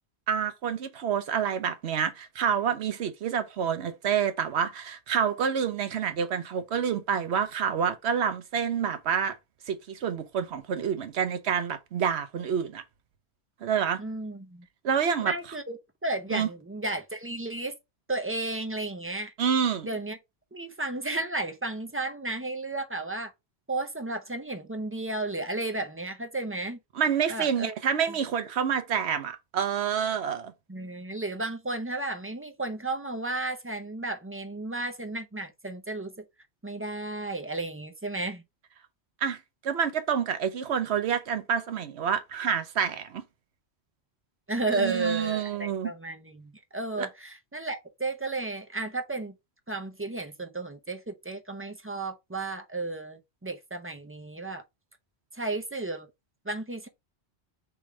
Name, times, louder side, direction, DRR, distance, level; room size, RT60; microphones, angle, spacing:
voice 1, 0.3-9.3 9.7-12.8 13.6-14.0 14.8-15.3 16.3-16.5 19.4-19.9 27.0-30.5 39.2-43.2 44.7-45.9 47.0-47.1, right 7 dB, 80° right, 1.0 m, -28 dB
voice 2, 14.0-14.7 15.2-17.8 18.1-19.3 19.8-20.2 20.5-23.3 23.7-26.8 27.3-27.7 30.7-36.1 36.6-38.4 44.5-49.3 49.7-54.6 55.3-56.1 56.4-56.9, right 2 dB, 15° right, 0.5 m, -33 dB
3.5 x 3.2 x 4.7 m
omnidirectional pair, 1.1 m